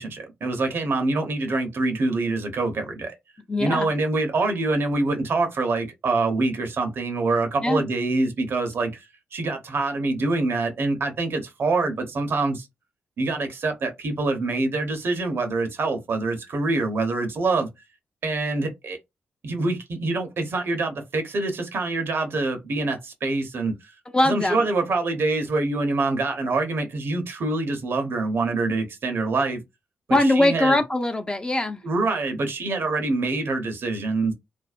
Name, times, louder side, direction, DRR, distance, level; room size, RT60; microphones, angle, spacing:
voice 1, 0.0-3.1 3.6-9.0 9.3-12.7 13.2-17.7 18.2-19.0 19.4-23.7 24.2-29.6 30.2-30.8 31.8-34.3, right 3 dB, 60° right, 0.8 m, -25 dB
voice 2, 3.5-3.9 7.6-7.8 24.1-24.7 30.1-31.8, left 1 dB, 20° left, 0.6 m, -21 dB
2.5 x 2.1 x 2.4 m
supercardioid pair, 45°, 4 cm